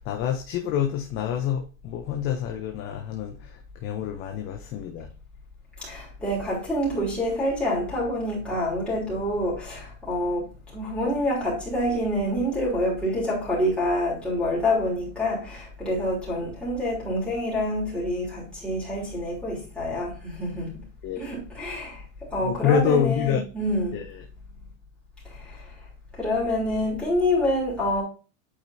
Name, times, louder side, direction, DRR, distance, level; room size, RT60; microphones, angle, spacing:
voice 1, 0.0-5.1 16.4-16.5 21.0-21.3 22.4-23.4 23.9-24.2, left 8 dB, 30° left, 0.7 m, -27 dB
voice 2, 5.8-10.5 10.7-20.8 21.2-22.0 22.3-24.0 25.3-25.6 26.2-28.0, left 1 dB, 5° left, 3.5 m, -27 dB
8.7 x 4.5 x 2.7 m
supercardioid pair, 145°, 40 cm